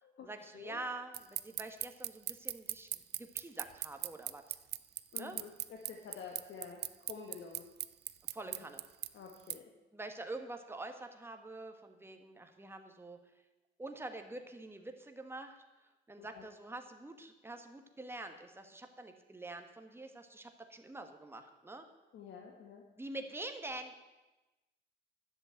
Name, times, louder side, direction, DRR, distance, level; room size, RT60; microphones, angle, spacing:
voice 1, 0.2-4.6 5.1-5.4 8.3-8.8 9.9-13.2 13.8-21.8 23.0-24.0, right 2 dB, 10° right, 5 dB, 1.4 m, -46 dB
sound 1, 1.1-9.6, right 12 dB, 55° right, 0.5 m, -38 dB
voice 2, 5.1-6.8 7.1-7.7 8.4-8.6 9.1-9.6 16.2-16.5 22.1-22.8, left 6 dB, 75° left, 1 dB, 1.6 m, -49 dB
11.0 x 7.8 x 7.8 m, 1.1 s
cardioid pair, 90°, 20 cm